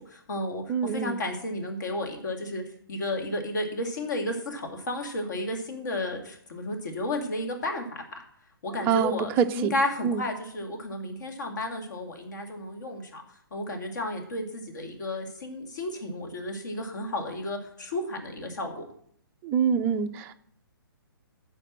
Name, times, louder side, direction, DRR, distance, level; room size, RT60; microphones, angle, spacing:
voice 1, 0.1-2.6 2.9-8.2 8.6-13.2 13.5-18.8, left 1 dB, 50° left, 3 dB, 2.2 m, -32 dB
voice 2, 0.7-1.2 8.7-9.7 10.0-10.2 19.4-20.3, right 7 dB, 15° right, 8 dB, 0.4 m, -26 dB
10.5 x 4.7 x 7.5 m, 0.64 s
figure-of-eight pair, 125°, 12 cm